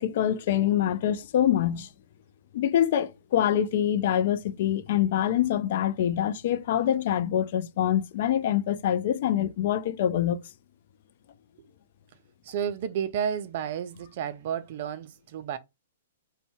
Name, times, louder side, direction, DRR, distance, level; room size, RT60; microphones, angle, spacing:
voice 1, 0.0-1.9 2.5-10.4, left 10 dB, 50° left, 0.3 m, -25 dB
voice 2, 12.4-15.6, right 8 dB, 45° right, 0.3 m, -31 dB
2.5 x 2.1 x 3.3 m
figure-of-eight pair, 115°, 0 cm